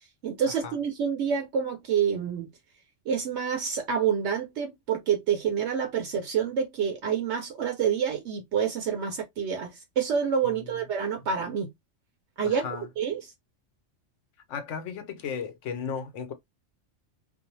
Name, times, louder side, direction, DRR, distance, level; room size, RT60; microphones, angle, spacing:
voice 1, 0.2-2.5 3.1-11.7 12.4-12.7 13.0-13.3, right 7 dB, 70° right, 0.9 m, -28 dB
voice 2, 12.4-12.8 14.5-16.3, left 6 dB, 80° left, 1.0 m, -35 dB
2.6 x 2.0 x 2.8 m
omnidirectional pair, 1.3 m